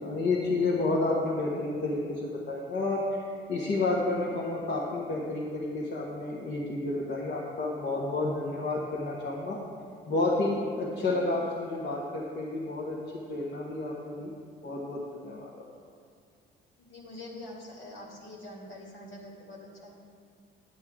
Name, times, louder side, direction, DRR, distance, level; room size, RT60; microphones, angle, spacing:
voice 1, 0.0-2.2 2.5-9.6 10.1-13.0 13.3-14.3 14.6-15.5, left 2 dB, 60° left, -5 dB, 1.4 m, -30 dB
voice 2, 16.8-19.9, left 1 dB, 80° left, -4 dB, 2.8 m, -45 dB
10.0 x 9.7 x 3.7 m, 2.2 s
cardioid pair, 90°, 20 cm